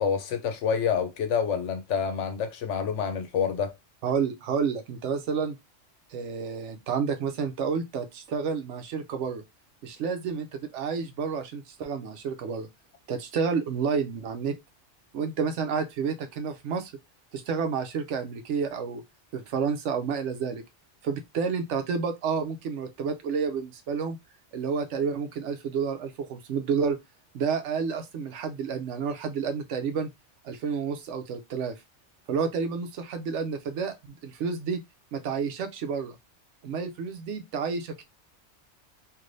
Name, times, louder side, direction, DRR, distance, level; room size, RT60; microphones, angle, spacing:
voice 1, 0.0-3.7, left 7 dB, 80° left, 0.9 m, -27 dB
voice 2, 4.0-5.6 6.1-9.4 9.8-12.7 13.1-14.6 15.1-16.9 17.3-19.0 19.3-20.6 21.0-24.2 24.5-27.0 27.3-30.1 30.4-31.8 32.3-34.8 35.1-36.2 36.6-38.0, right 6 dB, 75° right, 0.9 m, -30 dB
3.2 x 2.6 x 2.6 m
omnidirectional pair, 1.2 m